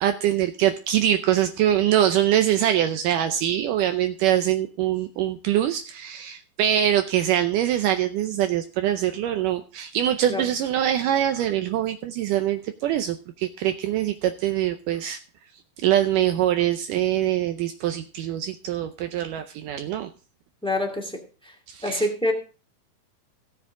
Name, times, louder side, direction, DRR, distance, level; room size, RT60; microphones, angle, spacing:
voice 1, 0.0-15.2 15.8-20.1 21.7-22.1, right 11 dB, 75° right, 8 dB, 2.0 m, -23 dB
voice 2, 20.6-21.1 21.8-22.3, left 1 dB, ahead, 2 dB, 1.6 m, -25 dB
17.0 x 7.4 x 3.6 m, 0.36 s
omnidirectional pair, 4.2 m